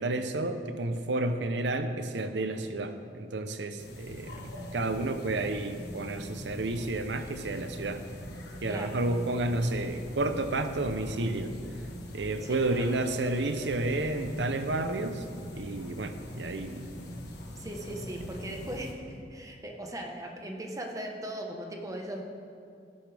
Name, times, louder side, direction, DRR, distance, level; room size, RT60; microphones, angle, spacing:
voice 1, 0.0-4.3 4.7-8.0 8.6-11.5 12.1-15.2 15.5-16.9, right 2 dB, 80° right, 8 dB, 0.7 m, -31 dB
sound 1, 3.8-18.9, equal, 65° left, 1.4 m, -42 dB
voice 2, 8.7-9.0 12.4-12.6 17.6-22.2, right 1 dB, 20° right, 2 dB, 1.1 m, -39 dB
14.0 x 11.0 x 3.4 m, 2.4 s
head